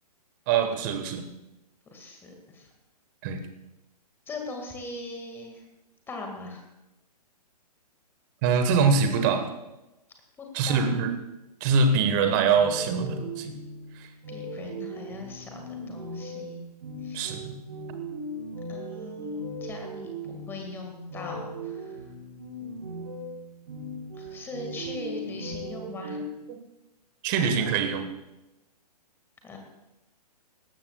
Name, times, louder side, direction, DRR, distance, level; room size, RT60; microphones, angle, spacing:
voice 1, 0.5-1.2 3.2-3.4 8.4-9.4 10.5-11.1 11.6-13.5 13.9-14.1 17.1-17.5 27.2-28.1, right 5 dB, 30° right, 7 dB, 1.4 m, -24 dB
voice 2, 1.9-2.7 4.3-5.6 6.1-6.6 10.4-10.8 14.3-16.6 17.0-17.4 18.7-22.1 24.1-26.2 29.4-29.6, left 2 dB, 10° left, 2 dB, 1.9 m, -40 dB
sound 1, 12.5-26.2, right 1 dB, 60° right, 4.2 m, -38 dB
18.0 x 13.5 x 2.4 m, 0.96 s
figure-of-eight pair, 125°, 21 cm